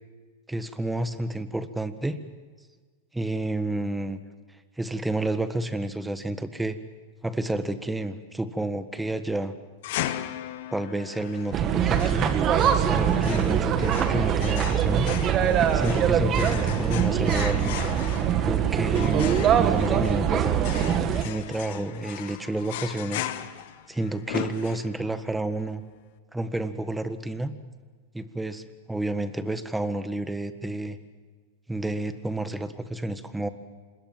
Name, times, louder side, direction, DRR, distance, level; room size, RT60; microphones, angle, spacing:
voice 1, 0.5-2.2 3.1-4.2 4.8-6.8 7.2-9.5 10.7-12.3 12.9-15.4 15.7-17.8 18.5-20.6 21.2-23.3 23.9-25.8 26.3-27.5 28.1-31.0 31.7-33.5, right 2 dB, 5° right, 11 dB, 1.6 m, -30 dB
sound 1, 9.8-25.2, left 13 dB, 65° left, 1.6 m, -37 dB
sound 2, 11.5-21.2, right 8 dB, 35° right, 2.0 m, -23 dB
26.5 x 21.5 x 7.5 m, 1.5 s
hypercardioid pair, 120°, 0 cm